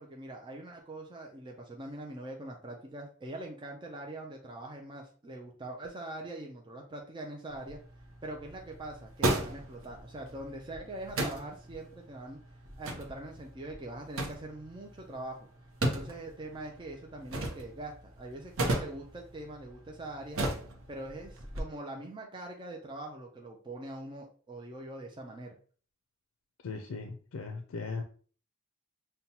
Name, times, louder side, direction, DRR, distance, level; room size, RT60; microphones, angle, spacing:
voice 1, 0.0-7.8 8.2-15.5 15.9-20.4 20.9-25.6, right 1 dB, 25° right, 0 dB, 0.4 m, -43 dB
sound 1, 7.5-21.6, right 1 dB, 75° right, 0.7 m, -37 dB
voice 2, 26.6-28.0, left 4 dB, 75° left, 5 dB, 0.4 m, -38 dB
5.4 x 2.2 x 2.8 m, 0.43 s
head